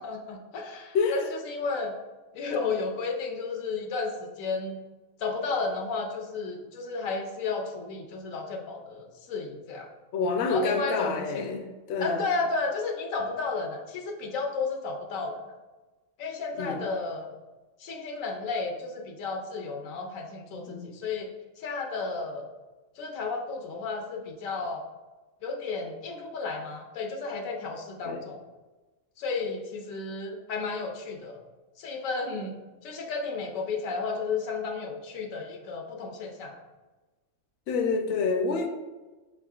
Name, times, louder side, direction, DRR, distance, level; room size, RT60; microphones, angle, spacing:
voice 1, 0.0-1.9 2.3-4.8 5.2-9.9 10.5-11.6 12.0-15.4 16.2-17.3 17.8-21.3 21.6-22.5 23.0-24.8 25.4-28.4 29.2-31.4 31.8-32.6 32.8-36.5, left 4 dB, 85° left, 3 dB, 1.1 m, -33 dB
voice 2, 10.1-12.3 16.6-16.8 20.5-20.9 28.0-28.2 37.7-38.7, left 4 dB, 65° left, 4 dB, 0.7 m, -28 dB
4.8 x 3.6 x 2.3 m, 1.2 s
omnidirectional pair, 1.4 m